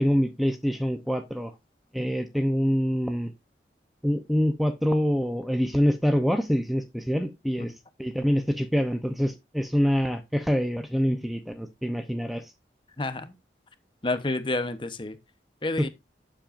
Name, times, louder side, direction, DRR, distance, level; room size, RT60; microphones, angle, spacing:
voice 1, 0.0-1.5 1.9-3.3 4.0-7.7 8.0-12.4 15.8-15.9, equal, ahead, 0.7 m, -25 dB
voice 2, 14.0-15.1 15.6-15.9, left 2 dB, 25° left, 0.9 m, -29 dB
12.0 x 7.6 x 2.6 m
head